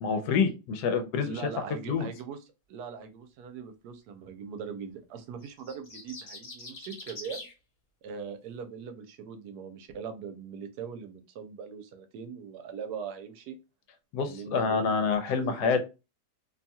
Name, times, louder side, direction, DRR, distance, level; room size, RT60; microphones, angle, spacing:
voice 1, 0.0-1.4 1.9-2.1 14.1-15.8, left 5 dB, 90° left, 7 dB, 1.2 m, -27 dB
voice 2, 1.2-2.4 2.7-7.4 8.0-13.6 14.3-14.9 15.3-15.8, right 6 dB, 80° right, 8 dB, 1.1 m, -40 dB
sound 1, 5.4-7.5, left 2 dB, 45° left, 1.0 m, -44 dB
2.9 x 2.3 x 2.7 m, 0.28 s
omnidirectional pair, 1.7 m